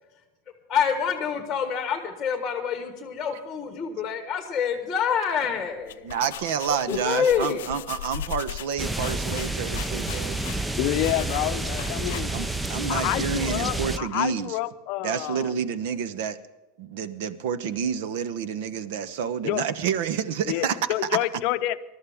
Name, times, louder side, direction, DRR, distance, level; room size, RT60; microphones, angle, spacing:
voice 1, 0.7-6.1 6.7-7.7, left 7 dB, 10° left, 5 dB, 1.5 m, -27 dB
sound 1, 5.7-12.6, left 11 dB, 85° left, 0.5 m, -38 dB
voice 2, 6.0-10.4 12.3-14.6 15.0-16.4 16.8-20.8, right 7 dB, 60° right, 15 dB, 0.9 m, -29 dB
sound 2, 8.8-14.0, right 2 dB, 5° right, 0.4 m, -29 dB
voice 3, 10.8-12.3 12.9-15.5 19.4-19.6 20.5-21.8, left 15 dB, 45° left, 11 dB, 0.7 m, -28 dB
21.5 x 13.0 x 3.5 m, 1.1 s
supercardioid pair, 165°, 0 cm